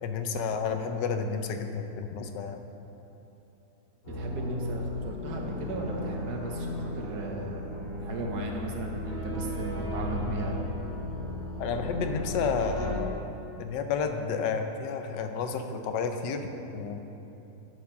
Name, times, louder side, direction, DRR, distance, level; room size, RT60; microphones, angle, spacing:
voice 1, 0.0-2.6 11.6-13.2 13.6-17.0, left 5 dB, 90° left, 6 dB, 1.3 m, -31 dB
sound 1, 4.0-12.9, left 1 dB, 70° left, 2.9 m, -35 dB
voice 2, 4.1-7.6 8.0-10.6, right 2 dB, 70° right, 1 dB, 1.4 m, -36 dB
10.5 x 5.1 x 5.5 m, 3.0 s
omnidirectional pair, 1.8 m